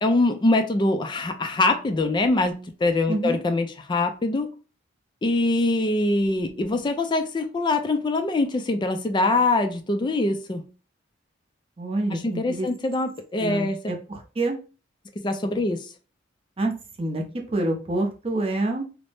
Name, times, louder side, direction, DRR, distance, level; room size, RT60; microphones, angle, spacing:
voice 1, 0.0-4.5 5.2-10.7 12.1-13.9 15.2-15.9, left 2 dB, 25° left, 0.3 m, -23 dB
voice 2, 3.1-3.4 11.8-12.7 13.4-14.6 16.6-16.7 17.0-17.2 17.5-18.8, right 2 dB, 30° right, 0.6 m, -27 dB
2.6 x 2.0 x 3.3 m
head